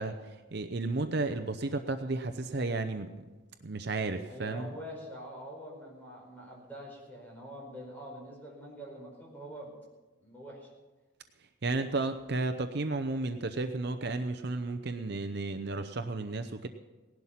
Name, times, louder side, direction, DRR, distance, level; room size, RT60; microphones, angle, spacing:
voice 1, 0.0-3.3 3.6-4.7 11.6-16.7, right 3 dB, 50° right, 8 dB, 0.7 m, -33 dB
voice 2, 4.2-9.7 10.2-10.7, equal, 10° left, -3 dB, 4.7 m, -45 dB
18.0 x 11.5 x 5.7 m, 1.2 s
head